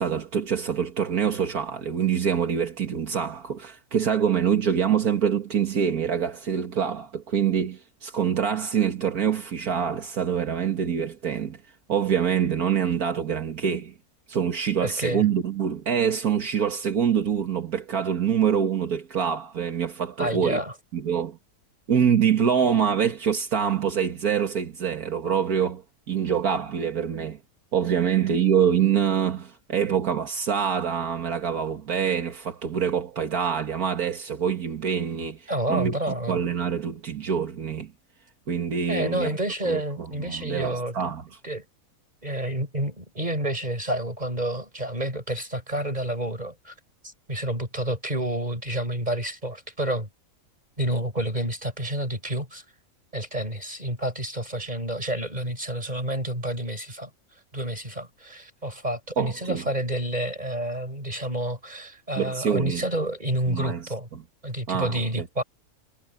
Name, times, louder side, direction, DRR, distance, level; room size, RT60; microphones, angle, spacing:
voice 1, 0.0-11.6 11.9-13.9 14.3-20.6 20.9-21.4 21.9-25.8 26.1-27.4 27.7-36.0 36.3-37.9 38.5-39.3 39.7-39.8 40.3-41.2 59.2-59.6 62.2-62.8 63.5-63.8 64.7-65.2, right 8 dB, 75° right, 2.1 m, -25 dB
voice 2, 14.8-15.3 20.2-20.7 35.5-36.4 38.9-41.1 41.4-41.6 42.2-46.7 47.0-50.1 50.8-52.6 53.1-57.1 57.5-64.1 64.4-65.4, right 1 dB, 25° right, 7.7 m, -29 dB
omnidirectional pair, 1.6 m